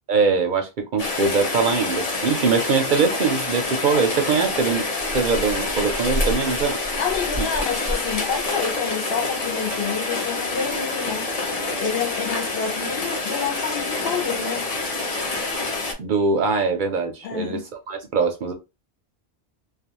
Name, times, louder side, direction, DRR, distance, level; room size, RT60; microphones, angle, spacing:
voice 1, 0.1-4.9 5.1-6.8 7.4-7.5 16.0-18.5, right 4 dB, 60° right, 0.6 m, -22 dB
Rain, 1.0-15.9, left 2 dB, 40° left, 0.7 m, -27 dB
voice 2, 7.0-14.7 17.2-17.6, left 7 dB, 70° left, 0.9 m, -28 dB
2.4 x 2.3 x 2.8 m
omnidirectional pair, 1.1 m